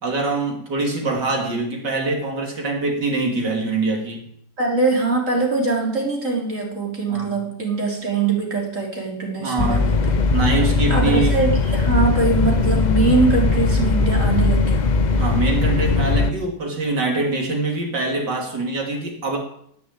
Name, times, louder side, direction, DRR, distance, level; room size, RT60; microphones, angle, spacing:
voice 1, 0.0-4.3 7.1-7.4 9.4-9.9 10.3-11.4 15.2-19.4, right 3 dB, 65° right, 2 dB, 3.5 m, -24 dB
voice 2, 4.6-10.2 10.9-14.9, right 3 dB, 40° right, -1 dB, 4.1 m, -22 dB
sound 1, 9.6-16.3, left 3 dB, 75° left, 0.4 m, -19 dB
17.0 x 7.0 x 9.0 m, 0.70 s
omnidirectional pair, 2.0 m